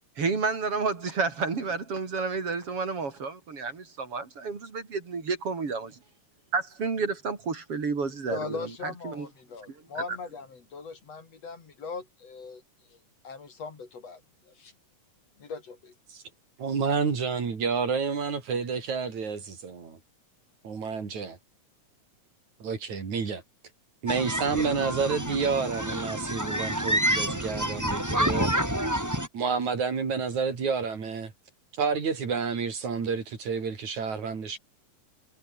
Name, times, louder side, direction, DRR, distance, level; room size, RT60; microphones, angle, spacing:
voice 1, 0.2-5.9 6.5-9.3, right 4 dB, 45° right, 4.1 m, -30 dB
voice 2, 8.3-12.6 12.9-13.0 13.2-14.7 15.4-15.9, left 4 dB, 50° left, 4.5 m, -40 dB
voice 3, 16.6-20.0 20.6-21.4 22.6-23.4 24.0-28.5 29.3-31.3 31.8-34.6, right 5 dB, 65° right, 5.1 m, -29 dB
sound 1, 24.1-29.3, right 1 dB, 5° right, 4.5 m, -28 dB
omnidirectional pair, 3.6 m